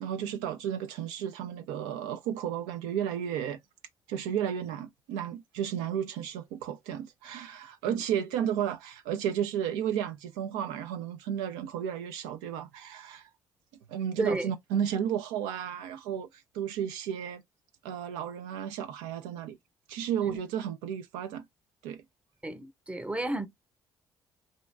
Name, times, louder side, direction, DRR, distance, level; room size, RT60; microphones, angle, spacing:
voice 1, 0.0-3.6 4.1-13.3 13.9-17.4 17.8-19.6 19.9-21.4 21.8-22.0, right 9 dB, 80° right, 0.4 m, -33 dB
voice 2, 22.4-23.5, right 2 dB, 10° right, 0.7 m, -32 dB
2.6 x 2.2 x 3.2 m
hypercardioid pair, 50°, 10 cm